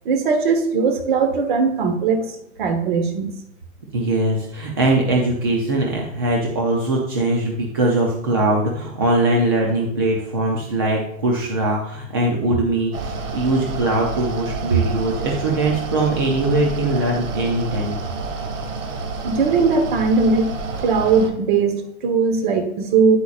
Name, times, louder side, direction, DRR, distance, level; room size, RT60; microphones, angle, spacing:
voice 1, 0.0-3.3 19.2-20.5 20.8-23.2, right 5 dB, 35° right, 7 dB, 1.2 m, -19 dB
voice 2, 3.9-18.0, right 2 dB, 20° right, -1 dB, 0.5 m, -21 dB
Mechanical fan, 12.9-21.3, right 3 dB, 60° right, 1.8 m, -29 dB
9.8 x 8.1 x 2.4 m, 0.78 s
hypercardioid pair, 165°, 42 cm